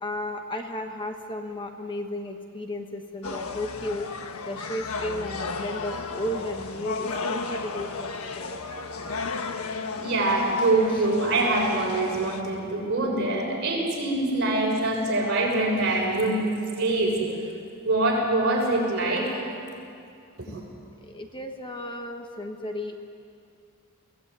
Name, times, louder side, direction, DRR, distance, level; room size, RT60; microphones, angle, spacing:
voice 1, 0.0-4.1 4.5-8.6 21.0-23.0, left 1 dB, 25° left, 4 dB, 1.2 m, -34 dB
sound 1, 3.2-12.4, left 4 dB, 85° left, 1.4 m, -34 dB
voice 2, 10.0-16.4 16.8-17.3 17.8-19.5 20.4-20.6, right 2 dB, 50° right, -3 dB, 6.8 m, -24 dB
22.5 x 17.0 x 9.6 m, 2.4 s
head